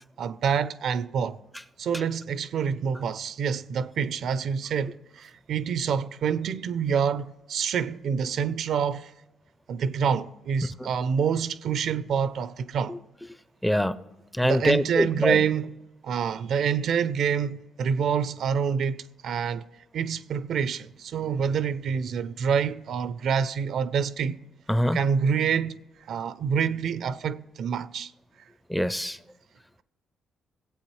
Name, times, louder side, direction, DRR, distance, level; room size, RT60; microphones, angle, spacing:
voice 1, 0.2-1.4 1.8-9.1 9.7-13.0 14.4-15.8 16.0-19.7 19.9-24.4 24.9-25.8 26.1-28.1, right 7 dB, 65° right, 0.4 m, -27 dB
voice 2, 13.6-14.0 14.3-15.4 24.7-25.0 28.7-29.2, equal, 5° left, 0.4 m, -24 dB
18.0 x 8.0 x 3.1 m
cardioid pair, 90°, 0 cm